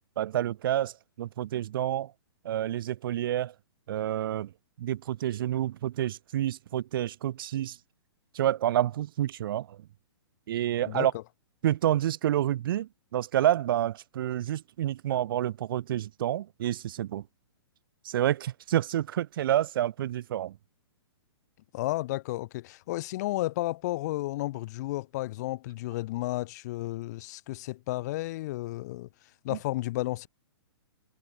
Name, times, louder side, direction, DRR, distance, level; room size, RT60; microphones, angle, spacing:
voice 1, 0.2-2.1 2.4-3.5 3.9-4.5 4.8-7.8 8.3-9.8 10.5-11.1 11.6-17.2 18.0-20.6 29.5-29.6, right 12 dB, 55° right, 0.7 m, -28 dB
voice 2, 10.9-11.2 21.7-29.1 29.4-30.3, left 18 dB, 40° left, 1.0 m, -32 dB
hypercardioid pair, 155°, 14 cm